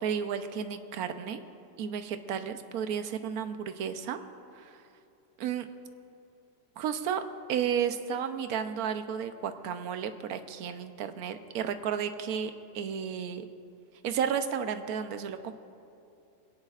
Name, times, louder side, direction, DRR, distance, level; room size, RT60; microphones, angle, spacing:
voice 1, 0.0-1.4 1.8-4.2 4.6-4.7 5.4-5.7 6.8-7.2 7.5-13.4 14.0-15.5, right 8 dB, 70° right, 9 dB, 1.1 m, -32 dB
21.5 x 17.0 x 2.4 m, 2.6 s
omnidirectional pair, 1.7 m